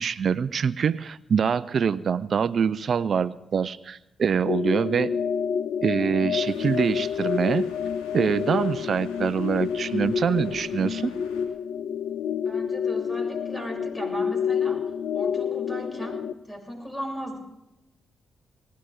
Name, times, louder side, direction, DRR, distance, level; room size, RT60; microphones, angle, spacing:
voice 1, 0.0-5.1 5.8-7.7 8.1-11.1, right 6 dB, 60° right, 17 dB, 0.4 m, -25 dB
sound 1, 4.4-16.3, left 7 dB, 70° left, 0.4 m, -28 dB
sound 2, 6.4-11.5, left 4 dB, 85° left, 2.7 m, -49 dB
voice 2, 12.4-14.8 15.1-16.2 16.5-17.4, equal, 20° left, 1 dB, 7.3 m, -36 dB
20.0 x 17.0 x 3.7 m, 0.93 s
hypercardioid pair, 45°, 0 cm